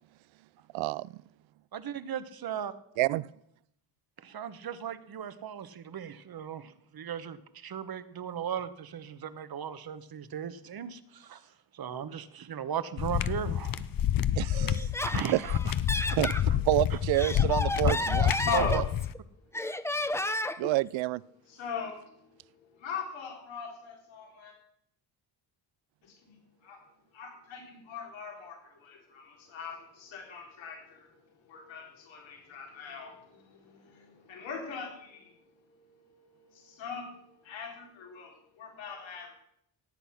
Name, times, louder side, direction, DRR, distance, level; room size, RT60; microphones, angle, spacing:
voice 1, 0.7-1.1 3.0-3.3 14.4-14.9 15.3-15.4 16.2-16.3 16.7-18.3 18.6-18.8 20.6-21.2, right 17 dB, 85° right, 22 dB, 0.5 m, -28 dB
voice 2, 1.7-2.7 4.2-13.9 14.4-14.8 15.0-15.6 16.3-16.6 17.8-17.9 18.5-18.8, right 8 dB, 50° right, 13 dB, 1.2 m, -37 dB
sound 1, 13.0-19.1, left 10 dB, 50° left, 0.7 m, -28 dB
Laughter, 14.7-16.4 17.0-19.2 19.5-20.7, left 1 dB, 5° left, 0.6 m, -32 dB
voice 3, 18.4-18.8 19.9-20.1 21.5-24.5 26.0-26.4 26.6-26.8 27.1-35.3 35.6-39.3, left 6 dB, 85° left, 0 dB, 3.8 m, -41 dB
18.0 x 8.0 x 5.8 m, 0.73 s
cardioid pair, 90°, 45 cm